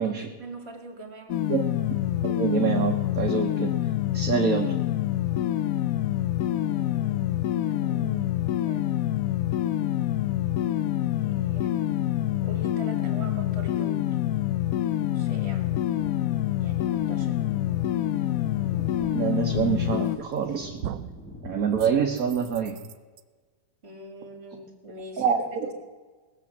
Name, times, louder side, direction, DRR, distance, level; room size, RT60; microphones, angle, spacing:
voice 1, 0.0-1.4 6.6-9.1 11.1-11.8 12.4-14.2 15.1-15.7 16.6-17.4 23.8-25.3 25.5-25.7, right 1 dB, 35° right, 5 dB, 2.3 m, -43 dB
sound 1, 1.3-20.2, left 13 dB, 75° left, 0.8 m, -26 dB
voice 2, 1.9-3.7 4.1-4.7 19.1-20.8 21.4-22.7 25.2-25.7, right 6 dB, 55° right, 2 dB, 1.4 m, -26 dB
sound 2, 16.0-22.7, left 1 dB, 5° left, 1.8 m, -45 dB
sound 3, 20.0-20.4 20.8-21.2 21.8-23.2, right 11 dB, 75° right, 1.3 m, -39 dB
19.0 x 7.2 x 7.2 m, 1.4 s
omnidirectional pair, 2.0 m